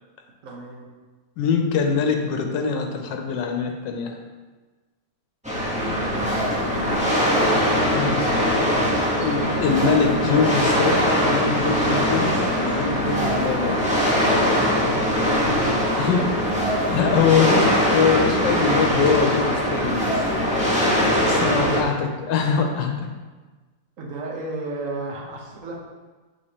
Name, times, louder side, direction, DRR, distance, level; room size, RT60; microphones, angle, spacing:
voice 1, 0.4-0.9 5.8-6.5 14.5-16.2 17.4-17.6 21.3-21.9 24.0-25.8, right 3 dB, 50° right, -1 dB, 1.2 m, -34 dB
voice 2, 1.4-4.2 7.9-8.4 9.2-13.8 16.0-16.3 16.7-20.2 21.3-23.1, left 6 dB, 85° left, 4 dB, 1.4 m, -23 dB
sound 1, 5.4-21.8, equal, 5° right, 0.7 m, -21 dB
7.9 x 4.9 x 2.9 m, 1.3 s
omnidirectional pair, 1.9 m